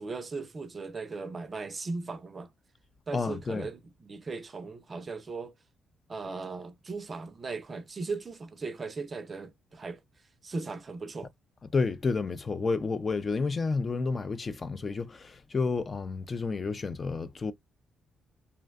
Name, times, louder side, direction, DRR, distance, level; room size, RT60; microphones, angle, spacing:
voice 1, 0.0-2.5 3.1-5.5 6.1-10.0 10.4-11.3, right 4 dB, 30° right, 0.4 m, -38 dB
voice 2, 3.1-3.7 11.7-17.5, left 4 dB, 30° left, 0.3 m, -30 dB
2.6 x 2.1 x 2.3 m
cardioid pair, 105°, 0 cm